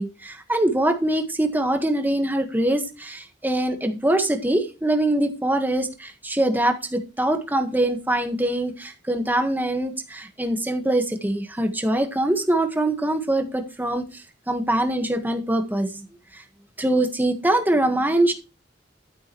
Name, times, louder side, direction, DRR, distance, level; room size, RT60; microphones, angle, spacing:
voice 1, 0.0-16.0 16.3-16.4 16.8-18.3, right 1 dB, 10° right, 6 dB, 1.4 m, -23 dB
11.5 x 9.4 x 3.1 m, 0.29 s
head